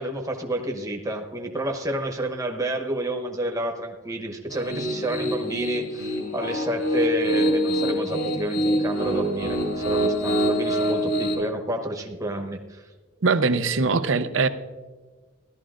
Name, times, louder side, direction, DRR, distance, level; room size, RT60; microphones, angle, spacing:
voice 1, 0.0-12.8, right 1 dB, 15° right, 3 dB, 0.9 m, -30 dB
Piano, 4.5-11.3, equal, 75° left, 3.3 m, -25 dB
voice 2, 13.2-14.5, right 4 dB, 70° right, 12 dB, 0.6 m, -21 dB
16.0 x 12.0 x 2.5 m, 1.4 s
head